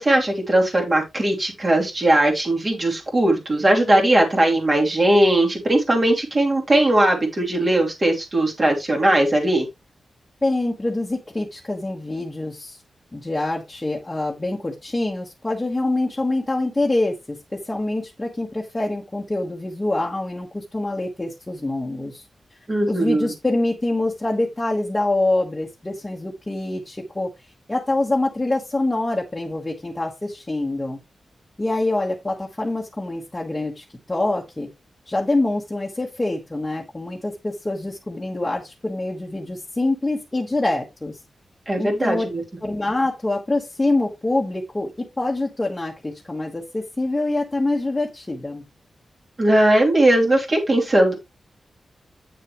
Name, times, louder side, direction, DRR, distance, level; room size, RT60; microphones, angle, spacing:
voice 1, 0.0-9.7 22.7-23.3 41.7-42.4 49.4-51.1, right 1 dB, 30° right, 0 dB, 2.8 m, -19 dB
voice 2, 10.4-12.8 13.1-22.2 22.9-27.3 27.7-31.0 31.6-34.7 35.1-41.2 41.8-42.2 42.6-48.6, left 2 dB, 15° left, -2 dB, 1.5 m, -25 dB
8.5 x 6.5 x 3.1 m, 0.22 s
wide cardioid pair, 125°, 0 cm